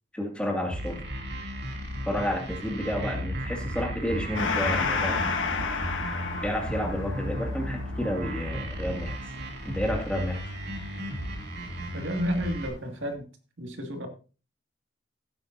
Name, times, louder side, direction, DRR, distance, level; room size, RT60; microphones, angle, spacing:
voice 1, 0.1-1.0 2.1-5.2 6.4-9.1 9.6-10.5, equal, 5° left, 2.1 m, -31 dB
sound 1, 0.7-12.7, equal, 55° right, 2.9 m, -34 dB
Gong, 4.3-11.3, left 5 dB, 75° left, 1.6 m, -32 dB
voice 2, 11.9-13.3 13.6-14.1, equal, 75° right, 2.1 m, -31 dB
15.5 x 8.9 x 2.7 m
head